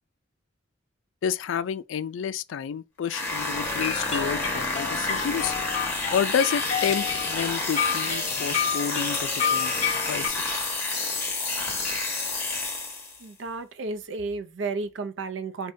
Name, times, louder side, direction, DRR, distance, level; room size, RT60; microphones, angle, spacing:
voice 1, 1.2-5.5 6.1-9.7 10.1-10.6, left 7 dB, 75° left, 0.3 m, -30 dB
sound 1, 3.1-13.2, left 3 dB, 15° left, 1.0 m, -29 dB
sound 2, 3.6-10.3, left 7 dB, 35° left, 0.8 m, -30 dB
voice 2, 13.2-15.7, right 3 dB, 70° right, 0.5 m, -32 dB
5.0 x 2.2 x 2.6 m
head